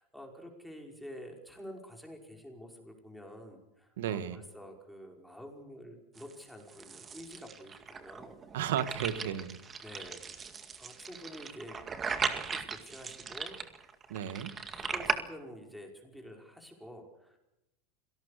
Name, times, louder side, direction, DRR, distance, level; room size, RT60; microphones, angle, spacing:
voice 1, 0.0-8.4 9.2-10.5 10.8-11.8 12.2-13.6 14.7-17.4, equal, ahead, 1 dB, 5.4 m, -49 dB
voice 2, 4.0-4.4 8.5-9.6 14.1-14.5, right 10 dB, 80° right, 12 dB, 1.8 m, -33 dB
sound 1, 6.2-15.2, right 5 dB, 20° right, 2.0 m, -38 dB
26.5 x 18.0 x 6.8 m, 0.90 s
supercardioid pair, 130°, 0 cm